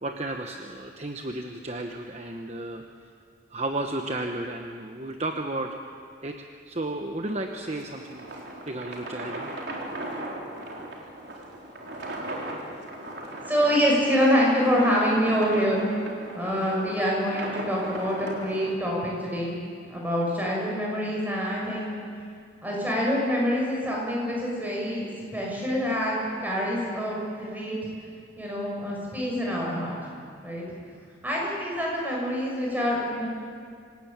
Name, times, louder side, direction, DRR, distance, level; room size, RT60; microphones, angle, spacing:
voice 1, 0.0-2.8 3.5-5.8 6.2-8.2 8.7-9.5, right 2 dB, 35° right, 4 dB, 1.1 m, -33 dB
sound 1, 7.5-18.7, right 1 dB, 65° right, 4.1 m, -38 dB
voice 2, 13.5-15.9 16.3-21.9 22.6-27.8 28.4-30.0 30.4-30.6 31.2-33.3, equal, 10° right, -3 dB, 6.9 m, -26 dB
27.0 x 18.0 x 8.9 m, 2.3 s
head